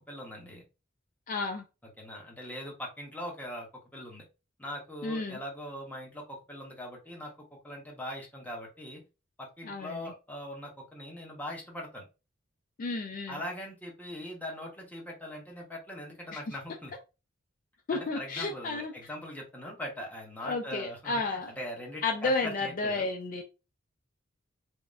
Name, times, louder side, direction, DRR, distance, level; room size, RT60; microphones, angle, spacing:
voice 1, 0.1-0.6 2.0-4.2 4.6-9.0 9.4-12.0 13.3-16.9 17.9-23.1, left 1 dB, 10° left, 0.8 m, -41 dB
voice 2, 1.3-1.6 5.0-5.4 9.6-10.1 12.8-13.4 17.9-18.9 20.4-21.5 22.0-23.4, left 3 dB, 40° left, 0.4 m, -32 dB
3.4 x 2.1 x 2.5 m
head